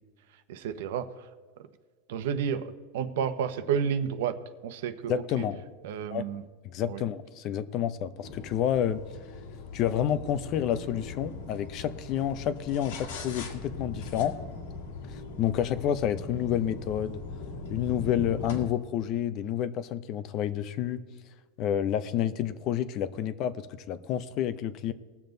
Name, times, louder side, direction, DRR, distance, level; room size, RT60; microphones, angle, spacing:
voice 1, 0.5-1.3 2.1-4.4 4.6-5.5 5.8-6.5 6.9-7.0, right 7 dB, 75° right, 11 dB, 1.0 m, -31 dB
voice 2, 5.1-5.6 6.1-6.3 6.7-9.0 9.7-14.3 15.1-17.2 17.7-21.0 21.6-24.9, left 10 dB, 40° left, 13 dB, 0.7 m, -29 dB
sound 1, 8.2-18.7, left 3 dB, 80° left, 2.2 m, -40 dB
20.5 x 7.2 x 4.0 m, 1.5 s
supercardioid pair, 155°, 0 cm